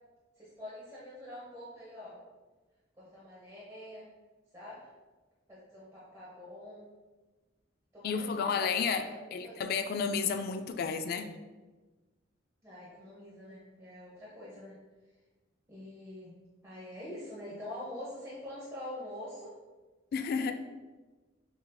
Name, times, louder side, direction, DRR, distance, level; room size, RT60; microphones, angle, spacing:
voice 1, 0.4-2.2 3.0-4.1 4.5-4.8 5.5-6.9 7.9-9.7 12.6-14.8 15.7-16.4 16.6-19.5 20.4-20.5, left 1 dB, 15° right, 0.9 m, -45 dB
voice 2, 8.0-11.3 20.1-20.5, left 6 dB, 55° left, 0.3 m, -32 dB
7.0 x 2.7 x 2.2 m
head